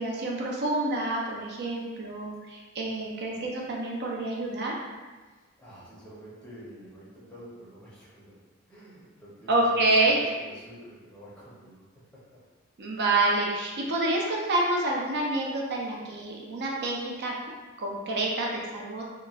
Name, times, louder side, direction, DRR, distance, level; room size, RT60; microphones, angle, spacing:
voice 1, 0.0-4.7 9.5-10.2 12.8-17.3 17.8-19.0, right 2 dB, 55° right, -2 dB, 0.5 m, -27 dB
voice 2, 5.3-8.4 8.7-11.9 12.1-12.2, right 1 dB, 5° left, -8 dB, 0.6 m, -48 dB
2.9 x 2.2 x 2.3 m, 1.3 s
head